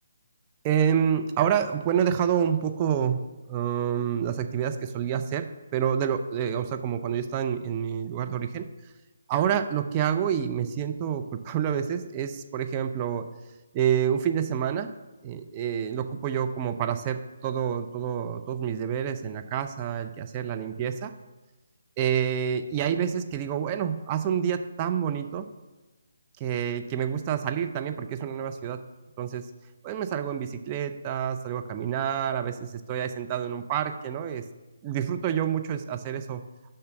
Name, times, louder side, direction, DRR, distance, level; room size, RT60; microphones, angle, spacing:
voice 1, 0.6-3.2 3.5-5.4 5.7-8.7 9.3-13.3 13.7-14.9 15.2-21.1 22.0-25.5 26.4-28.8 29.2-29.5 29.8-34.4 34.8-36.4, right 8 dB, 25° right, 6 dB, 0.5 m, -28 dB
6.8 x 5.7 x 6.5 m, 1.1 s
figure-of-eight pair, 145°, 0 cm